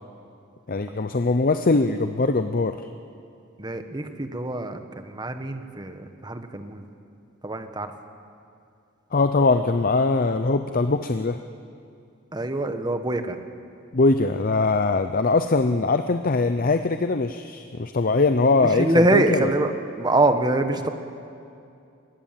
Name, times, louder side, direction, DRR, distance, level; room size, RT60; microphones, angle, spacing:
voice 1, 0.7-2.8 9.1-11.4 13.9-19.5, left 3 dB, 45° left, 9 dB, 0.6 m, -21 dB
voice 2, 3.6-6.9 7.4-7.9 12.3-13.4 18.8-19.7 20.0-20.9, right 2 dB, 20° right, 7 dB, 1.3 m, -24 dB
24.5 x 19.5 x 7.5 m, 2.5 s
head